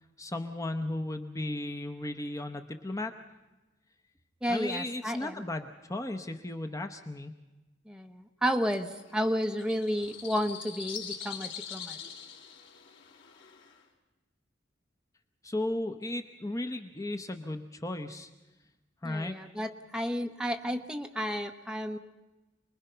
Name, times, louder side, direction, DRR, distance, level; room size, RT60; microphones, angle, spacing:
voice 1, 0.2-3.1 4.5-7.3 15.4-18.3 19.0-19.3, left 1 dB, 15° left, 5 dB, 0.8 m, -35 dB
voice 2, 4.4-5.4 7.9-12.0 19.0-22.0, equal, 5° right, 5 dB, 1.0 m, -32 dB
sound 1, 8.6-13.8, left 7 dB, 75° left, 3.7 m, -44 dB
28.0 x 21.0 x 5.7 m, 1.1 s
head